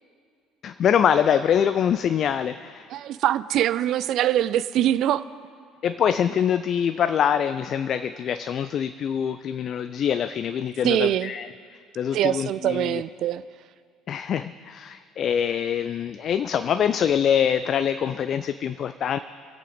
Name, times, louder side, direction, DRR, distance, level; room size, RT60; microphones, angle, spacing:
voice 1, 0.6-2.9 5.8-13.0 14.1-19.2, left 8 dB, 45° left, 12 dB, 0.3 m, -24 dB
voice 2, 2.9-5.2 10.8-11.3 12.1-13.4, right 12 dB, 55° right, 15 dB, 0.4 m, -23 dB
24.0 x 8.2 x 4.0 m, 2.3 s
figure-of-eight pair, 55°, 0 cm